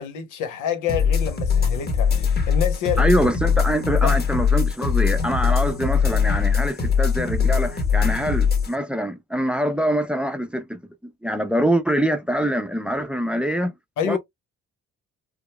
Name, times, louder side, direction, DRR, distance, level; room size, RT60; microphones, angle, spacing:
voice 1, 0.0-3.1 4.0-4.2 14.0-14.2, left 8 dB, 90° left, 1.0 m, -27 dB
sound 1, 0.9-8.7, left 6 dB, 30° left, 1.4 m, -21 dB
voice 2, 3.0-10.8 11.2-13.7 14.1-14.2, equal, 5° right, 0.6 m, -24 dB
5.0 x 2.1 x 2.2 m
cardioid pair, 90°, 30 cm